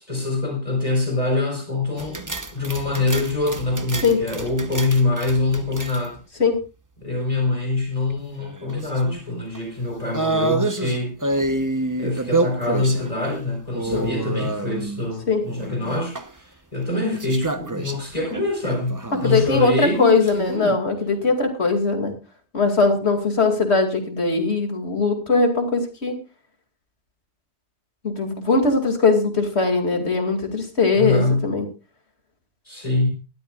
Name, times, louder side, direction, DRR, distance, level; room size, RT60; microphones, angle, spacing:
voice 1, 0.1-2.2 2.5-6.2 7.0-11.4 12.0-20.8 30.9-31.5 32.7-33.1, left 2 dB, 35° left, 1 dB, 4.2 m, -24 dB
sound 1, 2.0-6.2 8.1-9.2 9.5-9.6 10.1-13.1 13.7-15.1 15.4-16.3 17.1-19.5 20.1-20.3, right 2 dB, 20° right, 0.8 m, -28 dB
voice 2, 19.2-22.1 22.5-26.2 28.0-31.7, left 4 dB, 70° left, 5 dB, 2.7 m, -20 dB
20.0 x 13.0 x 2.4 m, 0.31 s
omnidirectional pair, 1.2 m